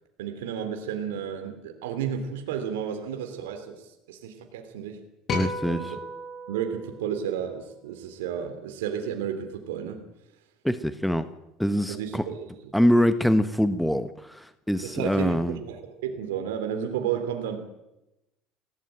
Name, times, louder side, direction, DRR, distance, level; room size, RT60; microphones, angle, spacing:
voice 1, 0.2-5.0 5.6-6.0 6.5-10.0 11.9-12.7 14.8-17.6, right 8 dB, 90° right, 5 dB, 3.1 m, -32 dB
sound 1, 5.3-7.8, left 2 dB, 45° left, 8.0 m, -34 dB
voice 2, 5.3-5.9 10.6-11.3 11.6-12.2 12.7-15.6, equal, ahead, 11 dB, 1.3 m, -24 dB
18.5 x 17.0 x 9.0 m, 0.90 s
supercardioid pair, 95°, 0 cm